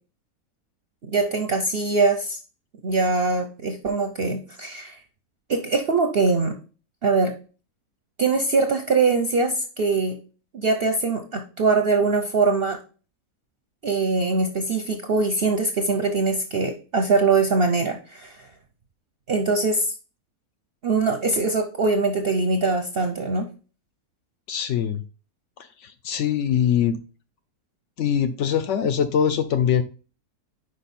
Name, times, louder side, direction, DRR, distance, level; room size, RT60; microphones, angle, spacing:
voice 1, 1.1-2.4 2.8-5.0 5.5-6.5 7.0-7.3 8.2-10.1 10.5-12.8 13.8-18.5 19.3-19.9 20.8-23.5, right 3 dB, 55° right, 4 dB, 0.7 m, -22 dB
voice 2, 24.5-25.0 25.6-27.0 28.0-29.8, left 8 dB, 70° left, 10 dB, 0.7 m, -23 dB
5.3 x 4.8 x 4.1 m, 0.35 s
omnidirectional pair, 1.7 m